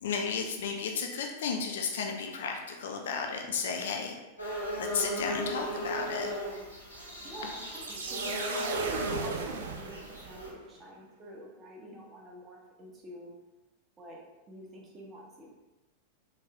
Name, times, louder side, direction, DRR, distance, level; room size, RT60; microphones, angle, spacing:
voice 1, 0.0-4.2 4.8-6.3, left 5 dB, 60° left, 2 dB, 0.5 m, -33 dB
sound 1, 4.4-10.5, equal, 90° left, 0.8 m, -37 dB
voice 2, 7.2-13.3 14.0-14.2 14.5-15.5, equal, 20° right, -3 dB, 1.0 m, -47 dB
sound 2, 7.7-10.5, right 5 dB, 60° right, 0.4 m, -36 dB
4.2 x 3.2 x 2.5 m, 1.1 s
figure-of-eight pair, 90°, 0 cm